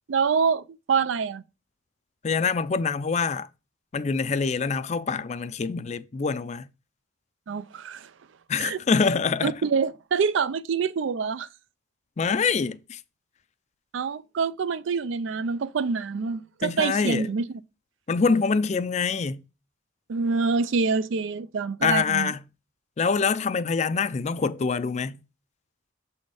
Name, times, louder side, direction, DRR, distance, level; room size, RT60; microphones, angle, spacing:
voice 1, 0.1-1.4 7.5-8.1 8.6-8.8 9.4-11.5 13.9-17.4 20.1-22.3, right 5 dB, 70° right, 0.4 m, -26 dB
voice 2, 2.2-3.5 3.9-6.7 8.5-9.5 12.2-13.0 16.6-17.3 18.1-19.4 21.8-22.4 23.0-25.2, left 5 dB, 35° left, 0.4 m, -25 dB
7.0 x 4.3 x 4.7 m
head